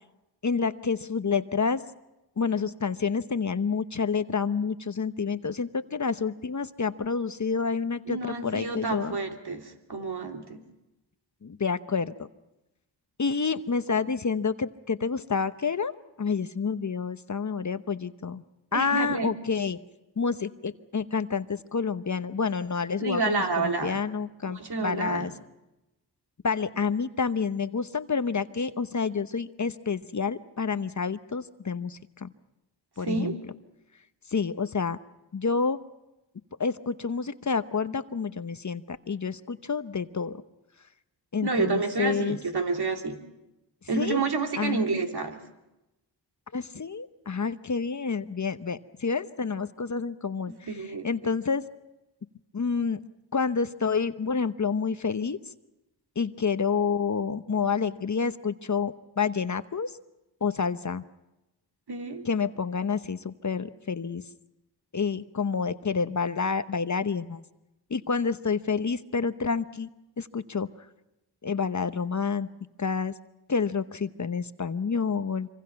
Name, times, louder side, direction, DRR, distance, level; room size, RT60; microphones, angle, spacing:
voice 1, 0.4-1.8 2.4-9.2 11.4-12.3 13.2-18.4 18.7-19.8 20.2-25.3 26.4-32.3 33.0-33.3 34.3-35.0 35.3-35.8 36.6-40.4 41.3-42.4 43.9-44.2 44.6-44.8 46.5-51.6 52.5-53.0 53.3-55.4 56.2-59.9 60.4-61.0 62.2-64.2 64.9-67.4 67.9-69.9 70.2-70.7 71.4-72.5 72.8-73.1 73.5-75.5, left 5 dB, 40° left, 12 dB, 0.9 m, -28 dB
voice 2, 8.1-10.6 18.7-19.3 23.0-24.0 24.5-25.3 33.0-33.3 41.4-43.2 43.9-45.4 50.5-51.3 61.9-62.3, right 4 dB, 60° right, 4 dB, 2.8 m, -29 dB
25.5 x 24.5 x 5.8 m, 0.96 s
cardioid pair, 60°, 43 cm